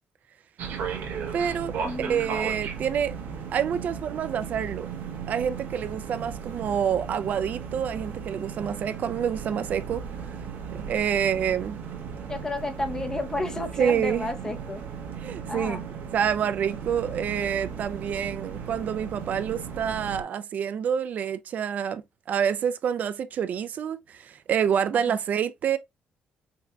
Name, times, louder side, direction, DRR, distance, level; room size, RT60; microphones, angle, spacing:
sound 1, 0.6-20.2, right 6 dB, 85° right, 1.0 m, -36 dB
voice 1, 1.3-3.1 3.5-4.9 5.3-10.0 10.7-11.8 13.8-14.3 15.2-15.8 16.1-22.0 22.3-25.8, right 8 dB, 55° right, 0.4 m, -27 dB
voice 2, 1.8-2.4 12.3-14.8 15.5-15.8 25.1-25.2, left 2 dB, 20° left, 0.7 m, -32 dB
5.2 x 2.8 x 2.2 m
cardioid pair, 125°, 3 cm